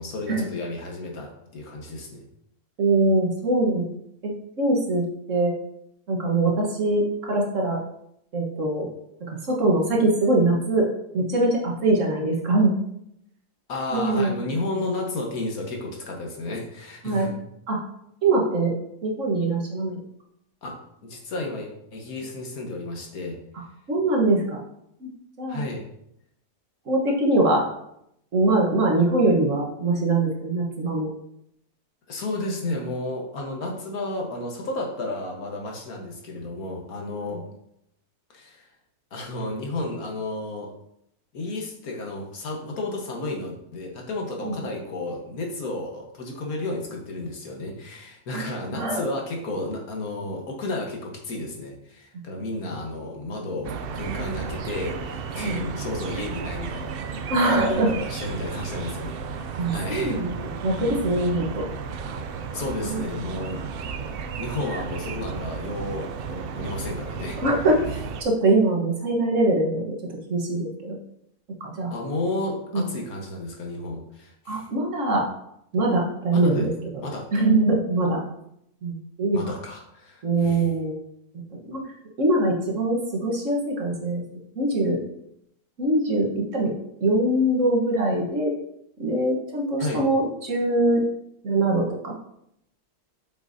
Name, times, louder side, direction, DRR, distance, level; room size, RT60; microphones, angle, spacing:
voice 1, 0.0-2.2 13.7-17.3 20.6-23.4 25.5-25.8 32.1-37.4 38.3-38.6 39.1-40.7 41.3-60.2 62.5-63.6 64.1-67.4 71.9-74.6 76.3-76.7 77.0-77.3 79.3-80.7 89.8-90.0, left 2 dB, 70° left, 1 dB, 1.7 m, -32 dB
voice 2, 2.8-3.9 4.2-5.5 6.1-7.8 8.3-8.9 9.2-10.9 11.1-12.8 13.9-14.4 17.0-17.3 17.7-17.8 18.2-18.7 19.0-20.0 23.9-24.6 25.0-25.1 25.4-25.6 26.9-27.7 28.3-31.1 37.3-37.4 44.4-44.5 48.3-48.5 48.7-49.0 55.4-55.6 57.3-57.9 59.6-61.6 62.8-63.1 67.4-67.8 68.2-69.9 70.3-71.0 71.6-71.9 72.7-72.8 74.5-75.3 75.7-76.7 77.3-78.2 78.8-79.5 80.2-81.0 81.5-81.8 82.2-84.2 84.5-85.0 85.8-86.7 87.0-88.5 89.0-91.0 91.4-92.1, right 2 dB, 55° right, -1 dB, 1.6 m, -23 dB
sound 1, 53.6-68.2, right 5 dB, 80° right, 0.5 m, -34 dB
7.9 x 5.9 x 2.7 m, 0.76 s
omnidirectional pair, 1.6 m